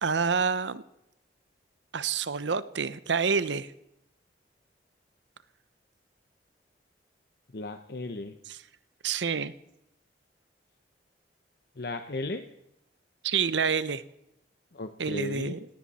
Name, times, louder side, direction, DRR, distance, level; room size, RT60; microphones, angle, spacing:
voice 1, 0.0-0.8 1.9-3.7 8.5-8.6 9.0-9.5 13.2-14.0 15.0-15.6, right 5 dB, 85° right, 15 dB, 0.9 m, -28 dB
voice 2, 7.5-8.4 11.8-12.5 14.7-15.6, left 2 dB, 60° left, 7 dB, 0.9 m, -35 dB
18.5 x 17.5 x 4.3 m, 0.83 s
head